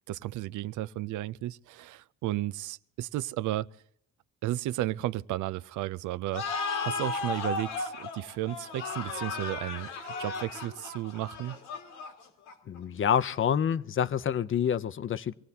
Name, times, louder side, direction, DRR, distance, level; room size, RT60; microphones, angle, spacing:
voice 1, 0.1-3.7 4.4-6.4 6.8-9.9 10.2-11.6, right 15 dB, 80° right, 0.5 m, -33 dB
sound 1, 6.3-12.8, left 4 dB, 85° left, 2.1 m, -35 dB
voice 2, 12.7-15.3, left 8 dB, 40° left, 0.6 m, -27 dB
25.5 x 17.0 x 2.8 m
cardioid pair, 90°, 30 cm